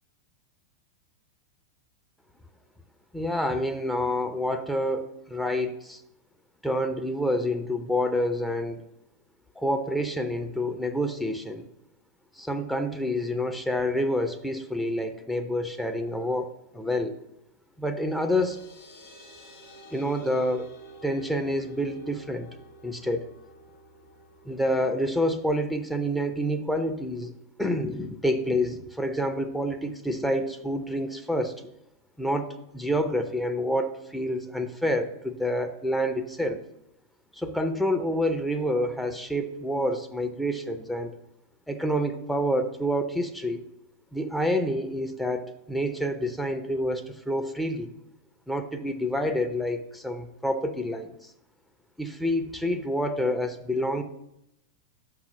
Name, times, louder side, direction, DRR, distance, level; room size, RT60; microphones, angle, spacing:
voice 1, 3.1-6.0 6.6-8.8 9.6-11.6 12.4-17.2 17.8-18.6 19.9-20.7 21.0-22.5 22.8-23.3 24.4-31.6 32.2-32.5 32.7-36.6 37.3-41.2 41.7-43.6 44.1-47.9 48.5-51.3 52.0-54.0, equal, 5° left, 6 dB, 0.5 m, -28 dB
sound 1, 17.9-25.0, right 3 dB, 55° left, 2.2 m, -50 dB
6.0 x 5.6 x 5.1 m, 0.84 s
figure-of-eight pair, 90°, 0 cm